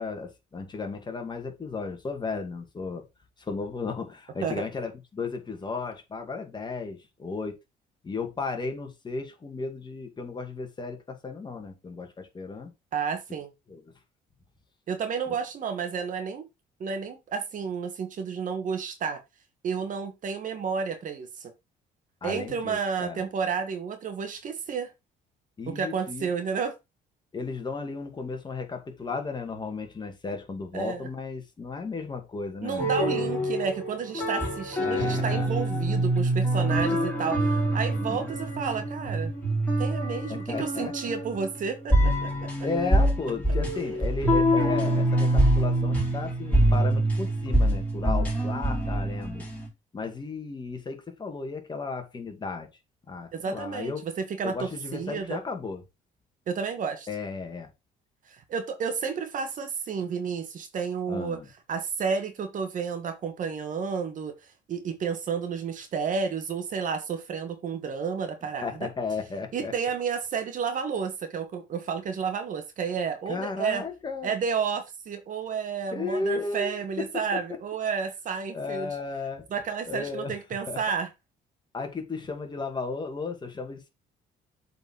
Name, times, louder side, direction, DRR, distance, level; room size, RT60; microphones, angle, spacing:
voice 1, 0.0-3.0 3.5-7.6 8.0-12.7 13.7-13.8 22.2-23.2 25.6-26.3 27.3-33.3 34.8-35.5 38.1-38.3 40.3-40.9 42.6-49.4 49.9-52.7 53.1-54.0 54.4-55.8 57.1-57.7 61.1-61.4 68.6-69.7 73.3-74.3 75.9-77.6 78.5-79.4 79.9-80.3 80.7-80.8 81.7-83.9, left 4 dB, 25° left, 2.2 m, -34 dB
voice 2, 12.9-13.5 14.9-16.5 16.8-19.2 19.6-21.5 22.2-24.9 25.7-26.8 30.7-31.1 32.6-39.3 39.8-42.5 53.3-55.4 56.5-57.1 58.3-61.4 61.7-64.4 64.7-68.9 69.5-73.8 74.2-79.0 79.5-81.1, right 6 dB, 50° right, 1.6 m, -31 dB
sound 1, 32.8-49.7, right 1 dB, 10° left, 4.5 m, -25 dB
7.7 x 4.6 x 4.6 m
cardioid pair, 110°, 17 cm